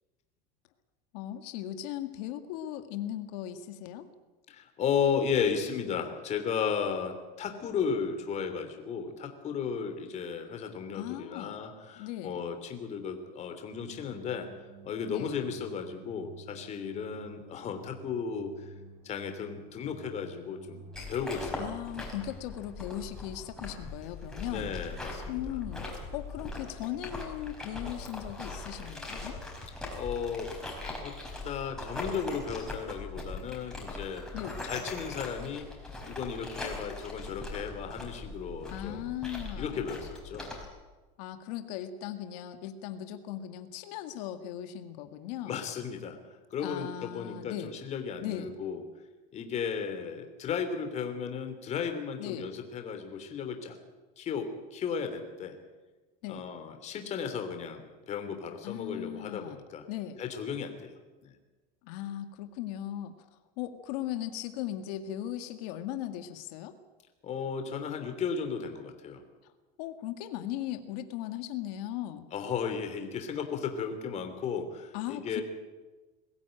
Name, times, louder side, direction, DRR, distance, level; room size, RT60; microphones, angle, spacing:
voice 1, 1.1-4.1 10.9-11.6 12.0-12.4 15.1-15.3 21.6-24.7 25.3-25.9 26.1-29.4 34.3-34.6 38.7-39.8 41.2-45.7 46.6-47.7 48.2-48.5 52.2-52.5 56.2-56.4 58.6-59.6 59.9-60.2 61.8-63.1 63.6-66.8 69.4-69.5 69.8-72.2 74.9-75.4, left 12 dB, 75° left, 8 dB, 1.9 m, -38 dB
voice 2, 4.5-14.5 14.8-18.7 19.0-21.7 24.4-25.6 29.9-30.5 30.8-31.1 31.4-34.2 34.6-35.7 36.1-39.1 39.6-40.5 45.4-46.2 46.5-48.8 49.3-53.8 54.2-55.5 56.3-59.8 60.2-61.3 67.2-69.2 72.3-75.4, left 6 dB, 35° left, 6 dB, 3.1 m, -35 dB
sound 1, 13.7-22.5, right 3 dB, 65° right, 4.7 m, -51 dB
sound 2, 20.9-40.7, left 2 dB, 5° left, 4.9 m, -41 dB
22.0 x 15.0 x 9.0 m, 1.2 s
supercardioid pair, 145°, 21 cm